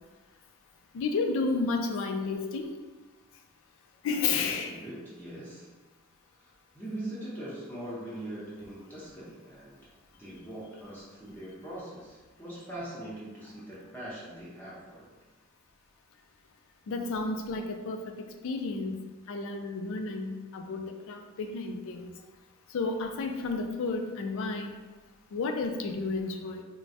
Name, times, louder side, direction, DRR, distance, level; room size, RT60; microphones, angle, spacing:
voice 1, 0.9-2.7 4.0-4.7 16.9-18.0 18.4-19.0 19.3-22.1 22.7-24.8 25.3-26.6, left 4 dB, 65° left, 5 dB, 0.3 m, -31 dB
voice 2, 4.4-5.7 6.7-9.8 10.2-15.1, right 1 dB, 10° left, -9 dB, 0.7 m, -41 dB
3.1 x 2.2 x 2.6 m, 1.3 s
head